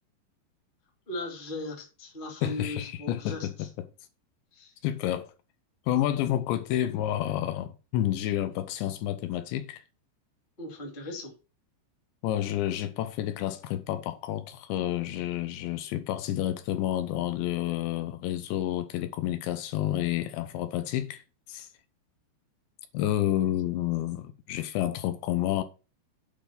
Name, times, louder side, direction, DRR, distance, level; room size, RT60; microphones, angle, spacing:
voice 1, 1.1-3.7 4.5-4.7 10.6-11.3, left 2 dB, 15° left, 2.0 m, -38 dB
voice 2, 2.4-3.5 3.8-3.9 4.8-5.3 5.9-9.8 12.2-21.2 21.5-21.7 22.9-25.6, left 12 dB, 80° left, 3.0 m, -29 dB
8.7 x 5.7 x 5.8 m
omnidirectional pair, 5.4 m